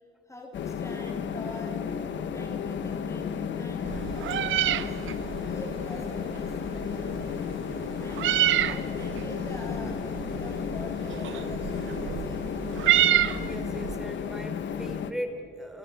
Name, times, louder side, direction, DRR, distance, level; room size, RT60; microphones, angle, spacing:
voice 1, 0.3-1.8 2.1-7.3 8.0-12.4, left 1 dB, 15° left, 1 dB, 3.3 m, -45 dB
sound 1, 0.5-15.1, left 7 dB, 70° left, 1.6 m, -33 dB
Meow, 3.8-14.0, right 12 dB, 75° right, 1.0 m, -29 dB
voice 2, 13.4-15.8, equal, ahead, 5 dB, 4.0 m, -38 dB
28.5 x 27.5 x 6.4 m, 2.6 s
cardioid pair, 90°, 20 cm